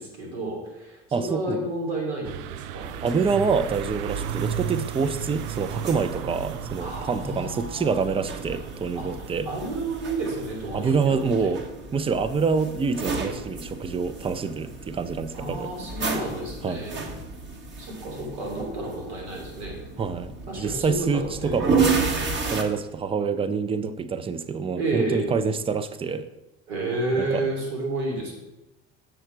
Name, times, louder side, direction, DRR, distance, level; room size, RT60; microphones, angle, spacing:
voice 1, 0.0-2.9 6.8-8.5 8.9-9.1 9.4-11.6 15.3-17.0 17.8-19.8 20.5-22.2 24.8-25.3 26.7-28.3, right 2 dB, 80° right, 0 dB, 3.0 m, -31 dB
voice 2, 1.1-1.6 3.0-9.5 10.7-11.6 11.9-15.7 16.6-16.9 20.0-21.9 22.5-26.3 27.1-27.4, right 5 dB, 15° right, 12 dB, 0.6 m, -26 dB
sound 1, 2.2-11.7, right 9 dB, 65° right, 0.5 m, -36 dB
sound 2, 2.8-22.6, right 4 dB, 35° right, 1.4 m, -33 dB
7.7 x 6.4 x 4.5 m, 0.97 s
hypercardioid pair, 75°, 32 cm